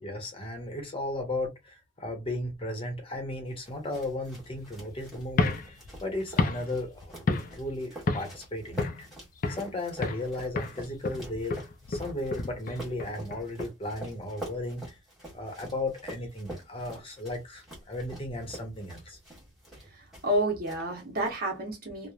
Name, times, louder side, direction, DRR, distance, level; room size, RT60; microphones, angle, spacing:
voice 1, 0.0-9.1 9.5-11.6 11.9-15.0 15.3-19.2, left 1 dB, 30° left, 0.8 m, -35 dB
sound 1, 3.6-20.4 20.7-21.3, right 1 dB, ahead, 1.4 m, -46 dB
sound 2, 5.3-7.7 8.1-8.4 8.8-9.7 10.0-10.3 10.6-13.7, left 3 dB, 45° left, 0.4 m, -31 dB
voice 2, 19.9-22.1, right 1 dB, 55° right, 0.8 m, -30 dB
3.0 x 2.0 x 2.3 m
head